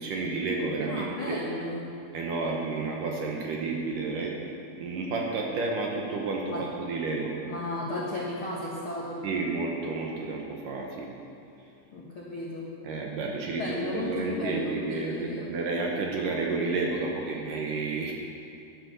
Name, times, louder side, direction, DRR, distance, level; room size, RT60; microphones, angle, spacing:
voice 1, 0.0-1.5 2.1-4.4 4.8-7.3 9.2-11.1 12.8-18.1, right 3 dB, 65° right, -1 dB, 2.3 m, -31 dB
voice 2, 0.9-1.8 6.5-6.6 7.5-9.2 11.9-12.7 13.5-15.5, left 1 dB, 65° left, -4 dB, 1.3 m, -34 dB
12.5 x 11.5 x 6.9 m, 2.7 s
omnidirectional pair, 4.9 m